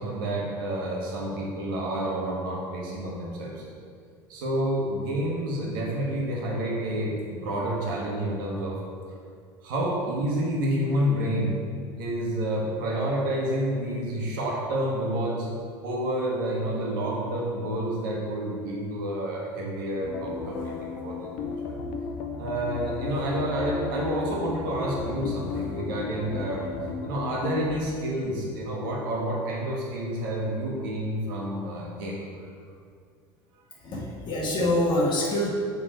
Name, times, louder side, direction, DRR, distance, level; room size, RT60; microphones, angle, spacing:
voice 1, 0.0-3.6 4.3-8.8 9.6-11.6 12.0-15.5 15.8-21.7 22.4-26.7 27.0-32.5, right 1 dB, 85° right, -3 dB, 1.4 m, -29 dB
sound 1, 20.0-27.8, left 5 dB, 75° left, 0.6 m, -34 dB
voice 2, 33.8-35.5, left 1 dB, 45° left, -4 dB, 1.2 m, -25 dB
6.7 x 3.5 x 4.4 m, 2.1 s
supercardioid pair, 95°, 11 cm